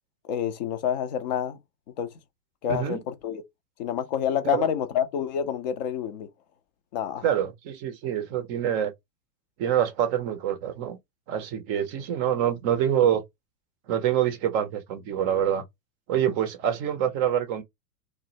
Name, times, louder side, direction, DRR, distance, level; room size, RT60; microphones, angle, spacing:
voice 1, 0.3-1.6 2.0-2.1 2.6-3.4 3.8-6.3 6.9-7.2, left 9 dB, 30° left, 0.3 m, -28 dB
voice 2, 7.2-8.9 9.6-11.0 11.3-13.2 13.9-15.6 16.1-17.6, right 10 dB, 25° right, 0.5 m, -26 dB
3.0 x 2.0 x 2.6 m
figure-of-eight pair, 100°, 50 cm